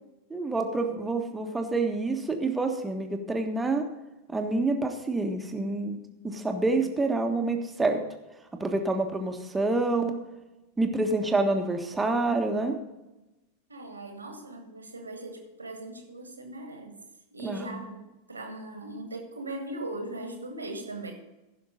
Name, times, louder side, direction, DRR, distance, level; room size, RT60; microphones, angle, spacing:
voice 1, 0.3-3.9 4.3-6.0 6.2-8.0 8.6-10.2 10.8-12.8 17.4-17.7, right 2 dB, 10° right, 4 dB, 1.4 m, -27 dB
voice 2, 13.7-17.0 17.3-21.1, right 2 dB, 80° right, 4 dB, 1.9 m, -39 dB
15.5 x 5.9 x 5.3 m, 1.0 s
figure-of-eight pair, 90°, 0 cm